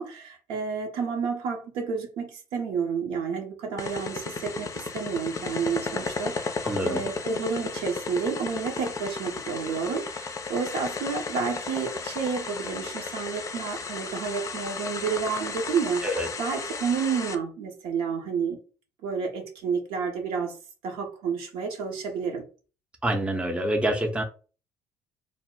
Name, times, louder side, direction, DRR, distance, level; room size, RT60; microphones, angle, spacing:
voice 1, 0.0-16.0 16.4-18.6 19.0-20.5 20.8-22.4, right 6 dB, 70° right, 2 dB, 0.7 m, -30 dB
sound 1, 3.8-17.4, left 4 dB, 35° left, 0.4 m, -34 dB
voice 2, 6.6-7.0 16.0-16.3 23.0-24.2, right 1 dB, 10° right, 2 dB, 0.6 m, -26 dB
2.1 x 2.0 x 3.7 m, 0.36 s
hypercardioid pair, 60°, 10 cm